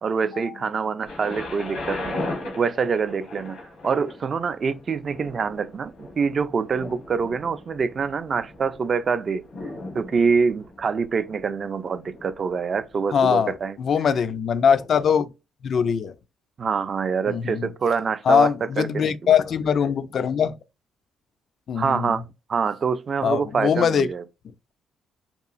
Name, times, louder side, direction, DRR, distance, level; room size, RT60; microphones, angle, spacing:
voice 1, 0.0-2.2 2.6-9.4 9.9-13.8 16.6-18.5 18.8-19.3 21.8-24.2, right 5 dB, 45° right, 0.3 m, -25 dB
Thunder, 1.1-12.9 13.7-13.8, left 2 dB, 80° left, 1.0 m, -38 dB
voice 2, 13.1-13.5 13.8-15.3 15.6-16.1 17.3-17.7 18.3-20.6 21.7-22.2 23.2-24.1, left 7 dB, 55° left, 0.3 m, -21 dB
2.9 x 2.3 x 2.4 m
cardioid pair, 90°, 0 cm